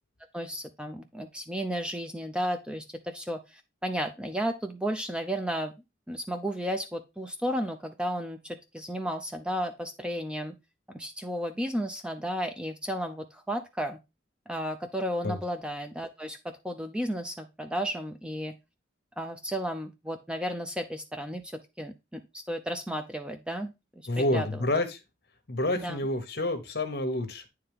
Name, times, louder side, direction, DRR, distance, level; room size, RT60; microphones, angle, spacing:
voice 1, 0.3-5.7 6.1-10.5 10.9-14.0 14.5-16.4 16.6-18.5 19.2-24.6 25.7-26.1, equal, 5° right, 7 dB, 0.5 m, -33 dB
voice 2, 24.1-25.0 25.5-27.5, left 1 dB, 55° left, 8 dB, 1.1 m, -28 dB
9.5 x 3.3 x 3.5 m, 0.25 s
head